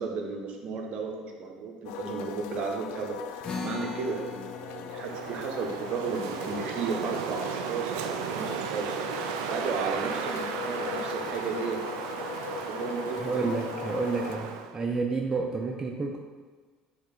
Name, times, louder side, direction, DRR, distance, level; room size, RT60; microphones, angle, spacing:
voice 1, 0.0-8.9 9.5-11.8 12.7-13.5, right 5 dB, 55° right, 2 dB, 1.1 m, -34 dB
sound 1, 1.8-14.4, left 8 dB, 75° left, 0.4 m, -40 dB
sound 2, 3.4-10.1, left 4 dB, 35° left, 1.4 m, -43 dB
Wind, 4.9-14.8, right 7 dB, 80° right, 0.4 m, -35 dB
voice 2, 13.2-16.2, right 4 dB, 25° right, 2 dB, 0.6 m, -30 dB
7.8 x 3.7 x 4.1 m, 1.5 s
hypercardioid pair, 70°, 2 cm